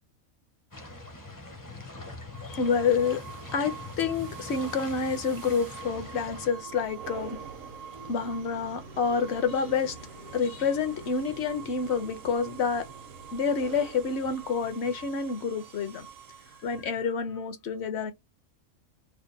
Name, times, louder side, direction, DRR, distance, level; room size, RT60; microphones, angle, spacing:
sound 1, 0.7-6.5, left 2 dB, 20° left, 0.5 m, -42 dB
sound 2, 2.3-17.0, right 7 dB, 75° right, 1.1 m, -45 dB
voice 1, 2.4-3.2 3.5-7.4 8.0-12.9 13.3-16.1 16.6-18.1, left 5 dB, 60° left, 0.9 m, -28 dB
3.4 x 2.2 x 3.9 m
omnidirectional pair, 1.4 m